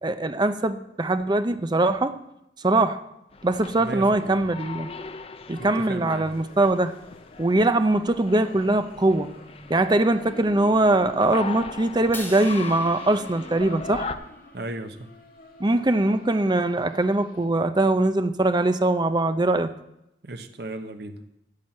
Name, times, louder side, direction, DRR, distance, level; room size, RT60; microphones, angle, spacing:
voice 1, 0.0-2.2 2.6-3.0 3.4-4.9 5.5-6.9 7.4-9.3 9.7-14.1 15.6-19.7, right 2 dB, 25° right, 9 dB, 0.6 m, -22 dB
sound 1, 3.3-14.2, left 4 dB, 35° left, 0.6 m, -39 dB
voice 2, 3.8-4.4 5.6-6.3 14.5-15.1 20.2-21.2, right 2 dB, 65° right, 7 dB, 1.0 m, -35 dB
sound 2, 6.2-17.4, equal, 55° left, 2.2 m, -47 dB
Crash cymbal, 12.1-14.5, left 1 dB, 10° left, 1.6 m, -42 dB
9.9 x 7.7 x 7.6 m, 0.84 s
head